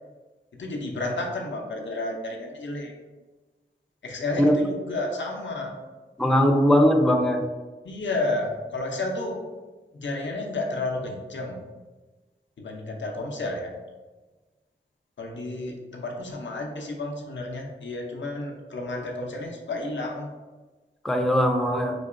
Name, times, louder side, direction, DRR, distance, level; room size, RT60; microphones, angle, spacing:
voice 1, 0.5-2.9 4.0-5.8 7.8-9.4 10.0-11.6 12.6-13.7 15.2-20.3, left 2 dB, 65° left, 1 dB, 0.6 m, -31 dB
voice 2, 6.2-7.4 21.0-21.9, equal, ahead, 3 dB, 0.4 m, -20 dB
3.9 x 2.8 x 2.5 m, 1.3 s
cardioid pair, 45°, 20 cm